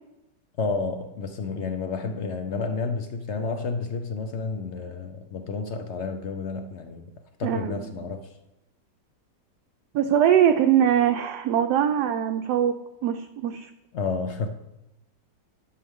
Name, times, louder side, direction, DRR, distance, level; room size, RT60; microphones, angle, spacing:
voice 1, 0.6-7.1 7.4-8.3 13.9-14.5, left 4 dB, 65° left, 7 dB, 0.6 m, -30 dB
voice 2, 7.4-7.9 9.9-13.7, right 9 dB, 75° right, 6 dB, 1.0 m, -22 dB
11.0 x 6.8 x 3.6 m, 0.90 s
omnidirectional pair, 1.9 m